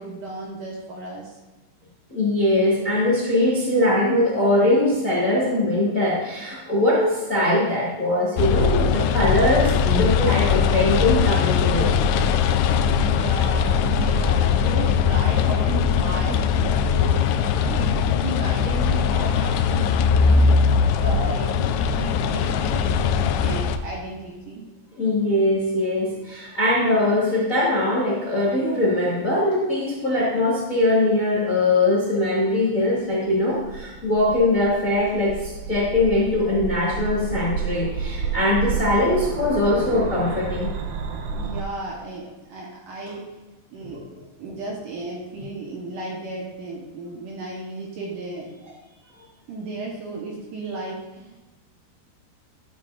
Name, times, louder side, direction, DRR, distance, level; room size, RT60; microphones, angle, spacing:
voice 1, 0.0-1.4 12.9-20.4 20.9-24.6 37.8-37.9 41.3-43.3 43.7-44.0 44.4-48.6 48.8-51.4, right 2 dB, 65° right, -3 dB, 2.3 m, -34 dB
voice 2, 2.1-11.9 25.0-40.7 43.9-44.0, left 1 dB, 35° left, -7 dB, 1.2 m, -21 dB
sound 1, 8.4-23.8, left 6 dB, 90° left, 2.7 m, -20 dB
sound 2, 33.3-41.6, right 6 dB, 80° right, 2.8 m, -30 dB
12.5 x 7.6 x 2.5 m, 1.1 s
omnidirectional pair, 4.7 m